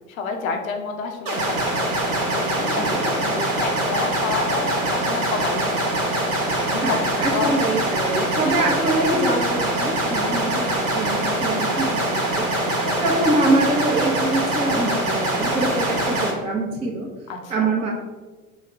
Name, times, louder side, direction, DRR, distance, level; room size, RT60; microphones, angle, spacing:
voice 1, 0.1-1.7 2.3-6.0 6.6-7.0 7.3-7.5 8.0-8.7 10.2-10.7 11.7-12.0 12.8-13.0 17.3-17.7, left 4 dB, 75° left, 4 dB, 0.6 m, -30 dB
sound 1, 1.3-16.3, right 1 dB, 70° right, 0.9 m, -23 dB
voice 2, 2.6-3.3 6.8-12.5 13.0-17.1 17.5-17.9, right 2 dB, 15° right, -1 dB, 0.4 m, -24 dB
3.8 x 2.1 x 4.3 m, 1.3 s
figure-of-eight pair, 65°, 41 cm